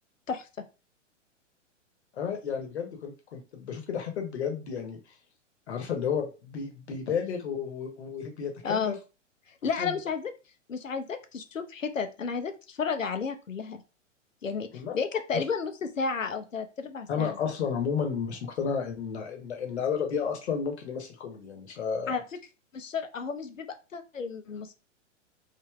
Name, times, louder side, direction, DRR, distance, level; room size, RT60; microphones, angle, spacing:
voice 1, 2.1-5.0 5.7-9.0 9.8-10.0 14.7-15.0 15.3-15.4 17.1-22.1, left 7 dB, 60° left, 4 dB, 1.0 m, -32 dB
voice 2, 8.6-9.0 9.6-10.3 10.7-13.8 14.4-14.7 14.9-17.4 22.1-22.2 22.7-24.7, left 5 dB, 90° left, 8 dB, 0.6 m, -32 dB
3.3 x 2.7 x 2.3 m, 0.31 s
figure-of-eight pair, 110°, 38 cm